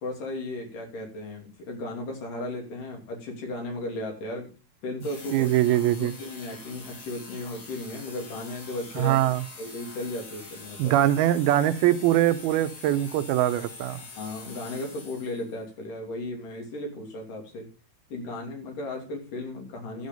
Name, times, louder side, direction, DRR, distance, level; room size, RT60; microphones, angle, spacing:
voice 1, 0.0-4.5 4.8-9.2 9.6-11.0 14.2-17.7 18.1-20.1, left 2 dB, 60° left, 1 dB, 4.3 m, -35 dB
sound 1, 5.0-15.6, left 3 dB, 35° left, 1.7 m, -45 dB
voice 2, 5.3-6.1 9.0-9.4 10.8-14.0, right 13 dB, 80° right, 11 dB, 2.5 m, -22 dB
12.5 x 6.7 x 5.3 m, 0.36 s
omnidirectional pair, 4.4 m